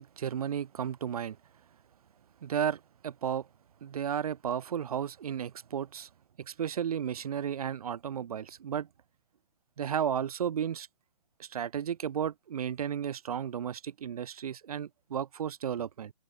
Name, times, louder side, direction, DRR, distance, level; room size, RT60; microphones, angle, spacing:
voice 1, 0.0-1.4 2.4-3.5 3.8-6.1 6.4-8.9 9.8-10.9 11.4-16.1, right 8 dB, 75° right, 0.6 m, -33 dB
open air
hypercardioid pair, 140°, 19 cm